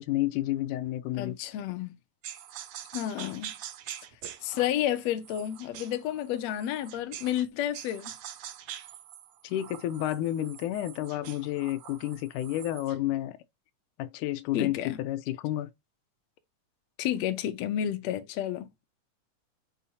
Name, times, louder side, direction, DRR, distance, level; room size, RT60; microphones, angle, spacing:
voice 1, 0.0-1.4 9.4-13.4 14.0-15.7, left 14 dB, 85° left, 2.1 m, -31 dB
voice 2, 1.2-1.9 2.9-3.5 4.4-8.1 14.5-15.0 17.0-18.8, left 11 dB, 70° left, 1.8 m, -31 dB
sound 1, 2.2-7.5 7.7-13.0, right 10 dB, 90° right, 1.2 m, -45 dB
7.0 x 5.5 x 2.8 m
omnidirectional pair, 3.6 m